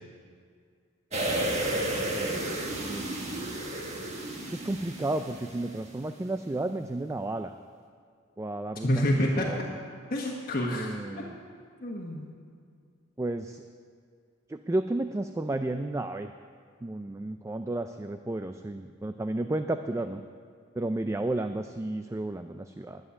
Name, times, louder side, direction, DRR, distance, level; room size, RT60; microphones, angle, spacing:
sound 1, 1.1-5.9 6.3-6.4, right 1 dB, 35° right, 1.6 m, -32 dB
voice 1, 2.2-2.6 2.9-3.1 4.5-7.5 8.4-9.8 10.7-11.4 13.2-13.6 14.5-16.3 16.8-20.2 20.8-23.0, right 2 dB, 15° right, 8 dB, 0.3 m, -32 dB
voice 2, 8.8-9.5 10.1-10.9 11.1-11.2 11.8-12.3, left 1 dB, 50° left, -2 dB, 1.4 m, -27 dB
11.0 x 7.3 x 9.6 m, 2.1 s
head